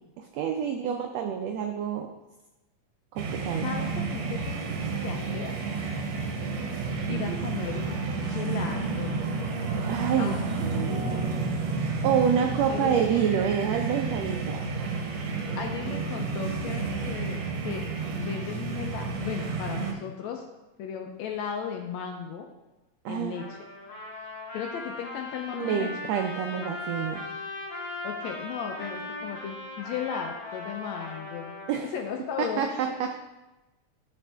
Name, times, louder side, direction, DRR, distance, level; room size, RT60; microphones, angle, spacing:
voice 1, 0.2-2.1 3.1-3.7 7.1-7.6 9.9-10.3 10.6-11.3 11.7-14.6 23.0-23.4 25.5-27.3 31.7-31.9 32.6-33.2, right 8 dB, 90° right, 4 dB, 1.4 m, -28 dB
sound 1, 3.2-19.9, right 4 dB, 70° right, 1.8 m, -31 dB
voice 2, 3.6-5.5 7.1-9.2 10.2-10.7 12.7-13.0 13.4-13.5 15.6-17.9 18.2-20.4 20.8-22.5 23.1-23.6 24.5-25.9 26.5-26.7 28.0-31.6 31.9-33.2, left 7 dB, 75° left, 3 dB, 1.7 m, -36 dB
Trumpet, 23.3-31.8, left 2 dB, 40° left, 2.2 m, -38 dB
12.0 x 4.3 x 3.4 m, 1.0 s
omnidirectional pair, 3.6 m